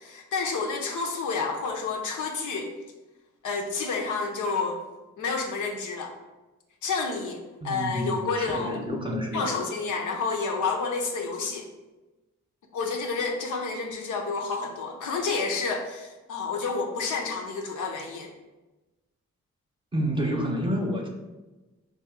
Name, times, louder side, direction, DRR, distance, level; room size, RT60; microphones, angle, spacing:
voice 1, 0.0-2.7 3.4-4.8 5.2-6.1 6.8-8.8 9.3-11.7 12.7-18.3, left 4 dB, 80° left, 2 dB, 0.5 m, -29 dB
voice 2, 7.6-9.6 19.9-21.1, equal, 15° right, 1 dB, 0.7 m, -29 dB
2.7 x 2.5 x 3.7 m, 1.1 s
cardioid pair, 45°, 30 cm